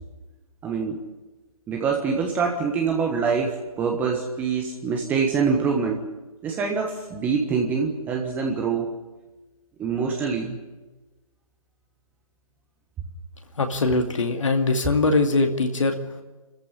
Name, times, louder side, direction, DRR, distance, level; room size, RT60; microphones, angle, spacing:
voice 1, 0.6-1.0 1.7-6.0 6.4-8.9 9.8-10.6, right 5 dB, 10° right, 1 dB, 1.4 m, -25 dB
voice 2, 13.5-16.0, left 3 dB, 55° left, 4 dB, 2.5 m, -22 dB
26.0 x 14.5 x 9.9 m, 1.2 s
figure-of-eight pair, 150°, 19 cm